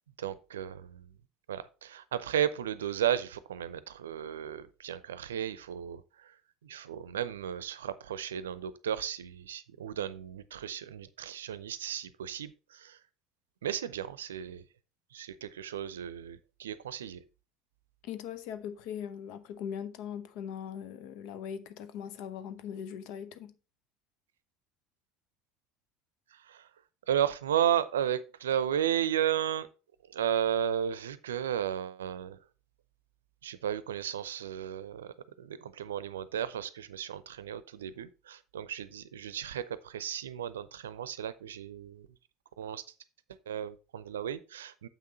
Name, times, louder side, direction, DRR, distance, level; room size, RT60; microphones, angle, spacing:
voice 1, 0.2-1.1 1.5-6.0 6.6-13.0 13.6-14.6 15.1-17.2 26.5-26.7 27.1-29.7 30.1-32.4 33.4-42.1 42.6-42.8 43.5-44.9, right 9 dB, 80° right, 0.6 m, -34 dB
voice 2, 18.0-23.6, left 8 dB, 60° left, 0.7 m, -40 dB
7.2 x 6.0 x 4.1 m
figure-of-eight pair, 70°, 0 cm